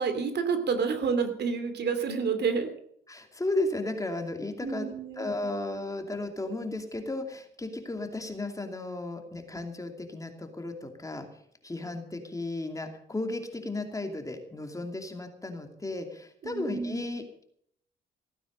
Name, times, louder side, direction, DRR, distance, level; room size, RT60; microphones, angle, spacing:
voice 1, 0.0-2.7 4.6-5.3 16.4-17.0, right 5 dB, 60° right, 9 dB, 2.7 m, -29 dB
voice 2, 3.1-4.9 5.2-11.3 11.6-17.4, left 2 dB, 15° left, 5 dB, 2.6 m, -34 dB
16.5 x 9.4 x 6.6 m, 0.67 s
cardioid pair, 90°, 20 cm